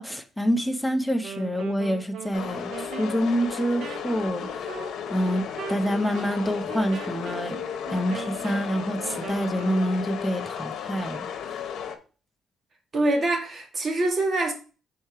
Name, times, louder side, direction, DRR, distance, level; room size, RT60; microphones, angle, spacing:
voice 1, 0.0-4.7 5.1-7.6 7.9-11.6, equal, ahead, 1.0 m, -27 dB
Wind instrument woodwind instrument, 1.1-9.9, right 7 dB, 70° right, 0.9 m, -40 dB
sound 1, 2.3-12.0, left 8 dB, 75° left, 1.1 m, -34 dB
voice 2, 12.9-14.5, right 2 dB, 40° right, 2.1 m, -24 dB
6.4 x 4.4 x 4.7 m
cardioid pair, 90°, 0 cm